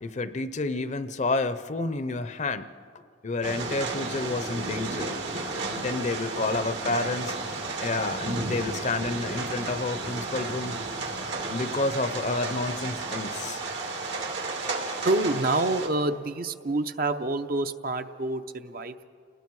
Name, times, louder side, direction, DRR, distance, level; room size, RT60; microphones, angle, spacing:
voice 1, 0.0-2.7 3.2-5.1 5.7-7.4 7.8-10.8 11.5-13.6, left 3 dB, 40° left, 12 dB, 0.6 m, -29 dB
sound 1, 3.4-15.9, right 3 dB, 85° right, 2.9 m, -33 dB
voice 2, 15.0-19.1, right 2 dB, 55° right, 9 dB, 0.7 m, -27 dB
29.0 x 19.5 x 4.7 m, 2.3 s
head